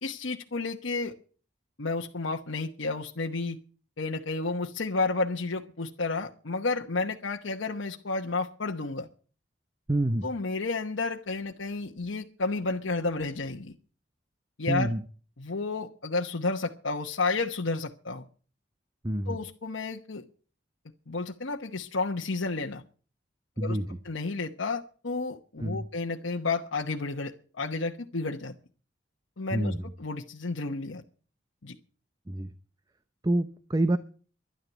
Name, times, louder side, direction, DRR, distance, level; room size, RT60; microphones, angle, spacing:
voice 1, 0.0-1.1 1.8-3.6 4.0-9.1 10.2-13.8 14.6-14.9 15.4-18.2 19.3-20.2 21.1-22.8 23.6-23.8 24.0-28.5 29.4-31.0 31.6-31.8, left 3 dB, 80° left, 1 dB, 1.1 m, -31 dB
voice 2, 9.9-10.3 14.7-15.0 19.0-19.4 23.6-23.9 25.6-25.9 29.5-29.8 32.3-32.5 33.2-34.0, right 1 dB, 20° right, 12 dB, 0.6 m, -27 dB
12.5 x 11.5 x 8.1 m, 0.41 s
head